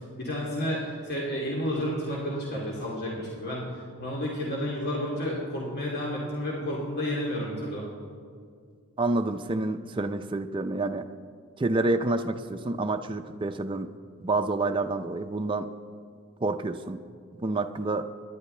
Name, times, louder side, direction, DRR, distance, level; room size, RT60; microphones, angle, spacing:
voice 1, 0.2-3.7 4.0-7.8, equal, 50° left, -4 dB, 2.4 m, -31 dB
voice 2, 9.0-11.1 11.6-13.9 14.2-15.7 16.4-17.0 17.4-18.1, right 2 dB, 25° right, 6 dB, 0.5 m, -28 dB
24.0 x 11.0 x 3.3 m, 2.1 s
head